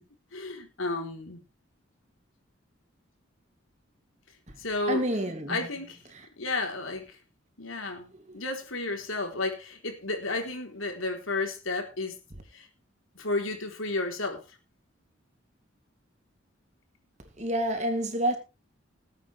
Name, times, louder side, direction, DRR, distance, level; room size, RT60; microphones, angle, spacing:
voice 1, 0.3-1.4 4.6-5.1 5.5-6.0 6.4-7.1 7.6-12.2 12.5-12.7 13.2-14.4, left 2 dB, 85° left, 4.0 m, -32 dB
voice 2, 4.9-5.6 17.4-18.4, right 1 dB, 35° right, 2.9 m, -28 dB
19.0 x 8.9 x 3.5 m
head